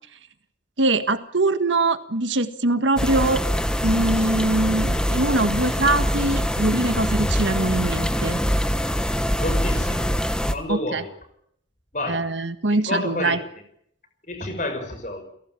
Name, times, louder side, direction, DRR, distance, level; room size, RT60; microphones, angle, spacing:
voice 1, 0.8-3.4 3.8-8.4 10.7-11.0 12.1-13.4, right 2 dB, 85° right, 9 dB, 1.7 m, -22 dB
sound 1, 3.0-10.5, equal, 5° left, 1.2 m, -24 dB
voice 2, 9.4-10.2 10.5-11.1 11.9-12.3 12.7-13.4 14.2-15.2, left 1 dB, 40° left, 7 dB, 5.7 m, -29 dB
30.0 x 17.5 x 9.1 m, 0.71 s
head